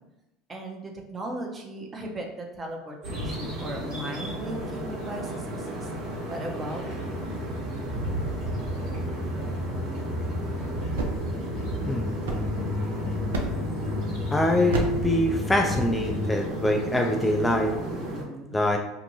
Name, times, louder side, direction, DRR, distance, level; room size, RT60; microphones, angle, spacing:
voice 1, 0.5-5.9 6.3-7.2 18.1-18.6, right 1 dB, 25° right, 1 dB, 0.6 m, -37 dB
sound 1, 3.0-18.2, right 1 dB, 65° right, 1.1 m, -34 dB
sound 2, 6.9-16.2, left 1 dB, 60° left, 0.8 m, -33 dB
people colliding, 11.0-12.9 13.3-13.8 14.7-15.2, right 2 dB, 80° right, 0.4 m, -33 dB
voice 2, 14.3-17.7 18.5-18.8, left 1 dB, 10° left, 2 dB, 0.4 m, -24 dB
2.6 x 2.2 x 2.9 m, 0.94 s
hypercardioid pair, 75°, 0 cm